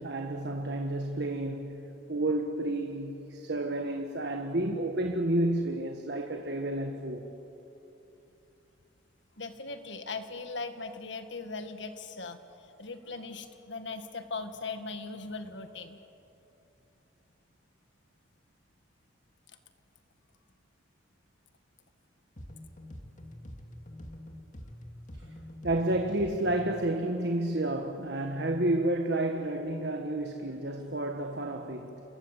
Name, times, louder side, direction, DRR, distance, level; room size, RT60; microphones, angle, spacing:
voice 1, 0.0-1.8 2.1-7.3 25.6-32.0, right 1 dB, 60° right, 1.5 m, -30 dB
voice 2, 9.4-16.0, left 3 dB, 70° left, 1.8 m, -39 dB
sound 1, 22.4-26.9, left 1 dB, 40° left, 2.3 m, -46 dB
28.5 x 22.5 x 8.3 m
head